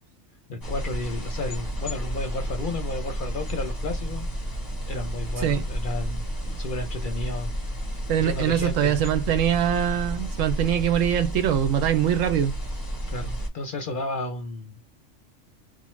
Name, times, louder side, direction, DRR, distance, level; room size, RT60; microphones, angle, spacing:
voice 1, 0.5-4.3 4.8-6.3 6.6-7.5 8.2-9.0 13.1-14.8, left 2 dB, 55° left, 0.6 m, -32 dB
sound 1, 0.6-13.5, right 1 dB, 20° left, 0.7 m, -31 dB
voice 2, 8.1-12.5, right 10 dB, 90° right, 1.0 m, -23 dB
3.0 x 2.0 x 3.1 m
omnidirectional pair, 1.3 m